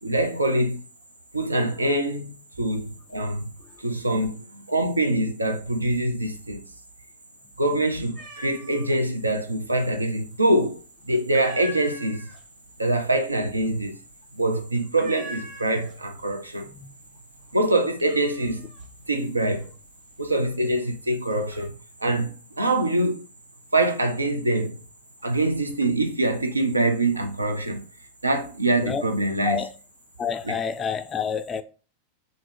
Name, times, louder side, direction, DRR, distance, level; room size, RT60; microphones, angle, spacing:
voice 1, 0.0-0.8 1.3-3.5 3.8-6.6 7.6-12.3 12.8-14.0 14.3-16.7 17.5-18.6 19.1-19.7 20.2-21.7 22.0-23.3 23.7-24.8 25.2-27.8 28.2-29.6, right 1 dB, 80° right, 0.5 m, -24 dB
sound 1, 8.2-9.0 9.3-10.1 10.4-10.8 11.1-16.2 16.5-17.1 17.4-20.6 21.1-21.7, right 1 dB, 40° right, 1.2 m, -43 dB
voice 2, 30.2-31.6, left 7 dB, 20° left, 0.3 m, -28 dB
3.6 x 2.6 x 3.7 m
figure-of-eight pair, 90°, 0 cm